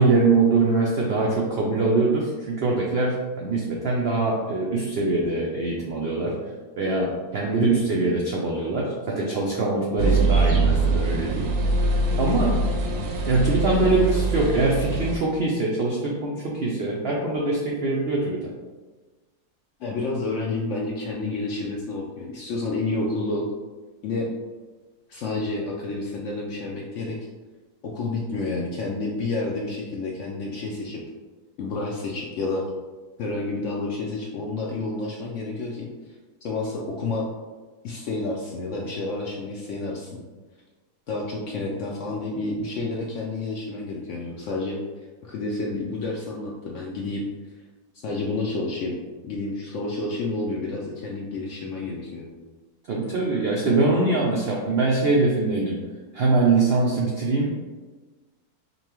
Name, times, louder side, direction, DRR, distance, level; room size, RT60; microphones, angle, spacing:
voice 1, 0.0-6.3 6.8-11.5 12.2-12.6 13.3-18.5 52.9-55.8 56.1-57.6, right 3 dB, 90° right, -2 dB, 0.5 m, -23 dB
sound 1, 10.0-15.2, right 3 dB, 70° right, 0.8 m, -23 dB
voice 2, 19.8-23.5 24.0-24.3 25.1-27.2 27.8-31.0 31.6-32.7 33.2-35.9 36.4-37.3 37.8-40.2 41.1-44.8 45.2-47.3 48.0-49.0 49.2-52.3, left 2 dB, 70° left, -2 dB, 0.7 m, -29 dB
5.3 x 2.2 x 2.9 m, 1.3 s
omnidirectional pair, 1.7 m